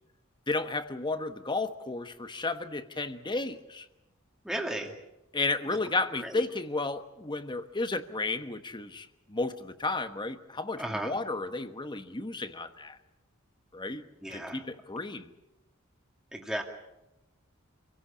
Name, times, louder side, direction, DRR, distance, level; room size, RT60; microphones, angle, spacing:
voice 1, 0.5-3.9 5.3-13.0 13.7-14.0 14.3-15.3, left 3 dB, 20° left, 10 dB, 1.2 m, -33 dB
voice 2, 4.4-4.9 6.2-6.3 10.8-11.1 14.2-14.6 16.3-16.6, right 1 dB, 5° right, 2 dB, 2.3 m, -34 dB
27.0 x 17.5 x 8.5 m, 0.94 s
head